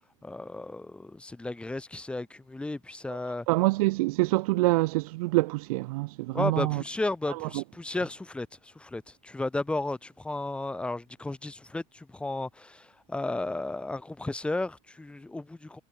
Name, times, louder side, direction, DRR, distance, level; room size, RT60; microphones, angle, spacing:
voice 1, 0.2-3.5 6.3-15.8, left 2 dB, 5° left, 4.5 m, -34 dB
voice 2, 3.5-6.8 7.4-7.6, right 22 dB, 80° right, 6.8 m, -26 dB
cardioid pair, 170°, 19 cm